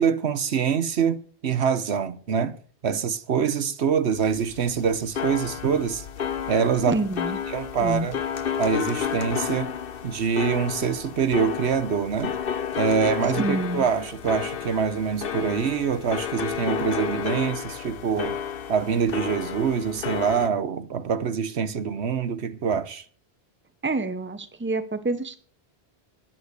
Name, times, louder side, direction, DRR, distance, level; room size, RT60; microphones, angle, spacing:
voice 1, 0.0-2.6 2.8-6.0 6.5-7.0 7.5-8.2 8.6-9.7 10.0-12.3 12.8-18.4 18.7-23.1, right 7 dB, 75° right, 1.2 m, -25 dB
sound 1, 4.2-20.5, left 8 dB, 60° left, 1.0 m, -31 dB
voice 2, 6.9-7.4 7.8-8.1 13.4-13.9 23.8-25.4, right 2 dB, 10° right, 0.9 m, -27 dB
11.5 x 9.4 x 6.6 m
omnidirectional pair, 1.1 m